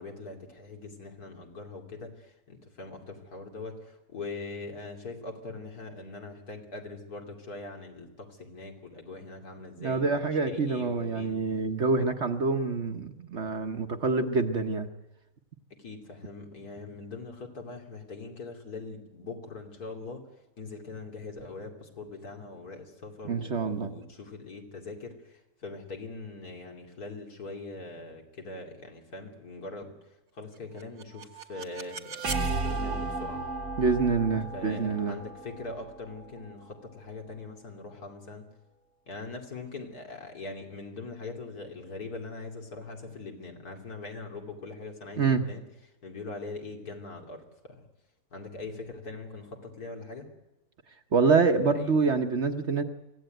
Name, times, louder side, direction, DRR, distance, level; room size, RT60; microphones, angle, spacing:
voice 1, 0.0-11.4 15.8-20.2 20.6-33.4 34.5-38.5 39.1-45.6 46.0-47.8 48.3-50.3 51.7-51.9, left 3 dB, 80° left, 3 dB, 3.4 m, -42 dB
voice 2, 9.8-14.9 23.2-23.9 33.8-35.2 45.2-45.5 51.1-52.8, right 4 dB, 50° right, 6 dB, 1.3 m, -26 dB
sound 1, 30.8-36.7, right 3 dB, 70° right, 1.9 m, -34 dB
24.5 x 16.0 x 9.2 m, 0.99 s
omnidirectional pair, 1.6 m